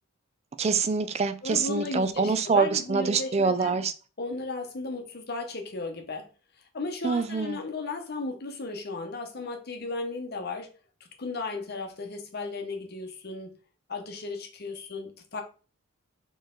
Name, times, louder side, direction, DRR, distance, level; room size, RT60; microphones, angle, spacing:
voice 1, 0.6-3.9 7.0-7.6, right 4 dB, 30° right, 0.3 m, -25 dB
voice 2, 1.4-3.8 4.2-6.3 6.6-10.7 11.2-13.5 13.9-15.4, left 3 dB, 45° left, 0.8 m, -35 dB
4.4 x 3.1 x 3.7 m
head